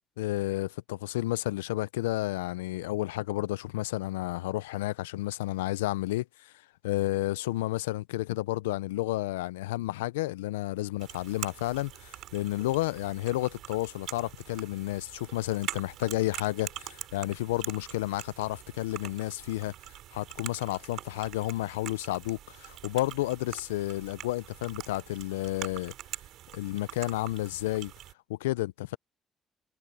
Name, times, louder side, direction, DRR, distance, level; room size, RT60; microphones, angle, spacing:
voice 1, 0.2-6.5 6.8-19.7 20.1-25.9 26.5-27.9 28.3-29.0, left 17 dB, 90° left, 0.4 m, -31 dB
sound 1, 11.0-28.1, right 13 dB, 75° right, 3.1 m, -44 dB
hypercardioid pair, 50°, 0 cm